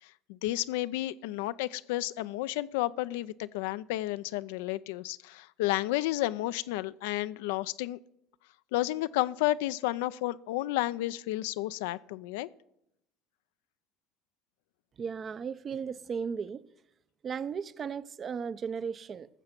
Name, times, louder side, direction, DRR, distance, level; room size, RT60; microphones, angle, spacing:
voice 1, 0.0-8.0 8.7-12.5, left 16 dB, 80° left, 0.3 m, -32 dB
voice 2, 15.0-16.6 17.2-19.3, right 6 dB, 40° right, 0.5 m, -35 dB
15.0 x 6.6 x 5.9 m
hypercardioid pair, 80°, 0 cm